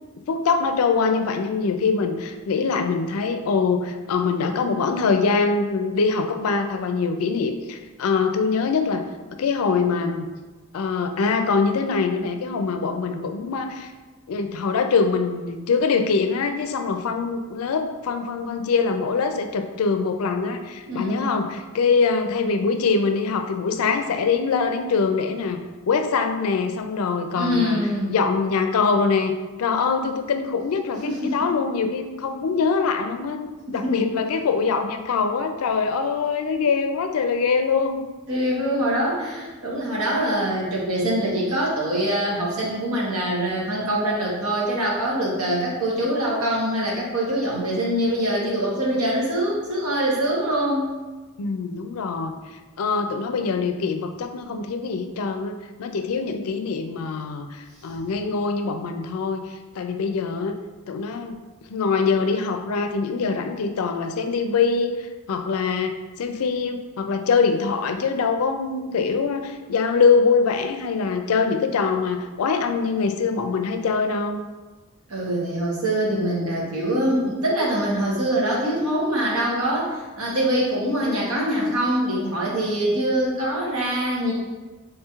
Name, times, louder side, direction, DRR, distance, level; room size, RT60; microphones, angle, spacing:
voice 1, 0.3-9.0 9.4-10.3 10.7-13.9 14.3-25.6 25.9-27.8 28.1-29.3 29.6-38.0 51.4-52.3 52.8-59.4 59.8-60.6 60.9-61.4 61.7-74.4, left 5 dB, 80° left, 6 dB, 0.4 m, -23 dB
voice 2, 20.9-21.4 27.4-28.1 31.0-31.4 33.7-34.1 38.3-50.9 75.1-84.3, right 1 dB, 85° right, -4 dB, 1.0 m, -24 dB
3.3 x 2.4 x 4.3 m, 1.2 s
head